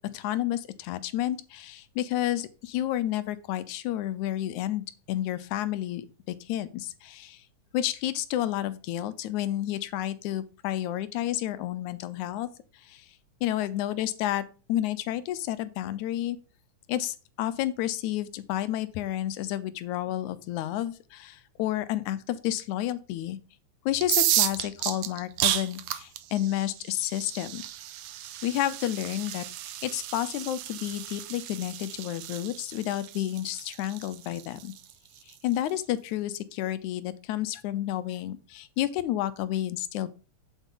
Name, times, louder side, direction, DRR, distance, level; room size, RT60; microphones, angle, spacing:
voice 1, 0.1-7.4 7.7-12.5 12.7-13.1 13.4-16.4 16.9-23.4 23.9-27.6 28.4-29.5 29.8-34.7 35.3-40.1, left 13 dB, 85° left, 15 dB, 2.1 m, -30 dB
sound 1, 24.0-35.7, right 13 dB, 75° right, 1.9 m, -32 dB
8.4 x 8.1 x 3.8 m, 0.34 s
omnidirectional pair, 3.4 m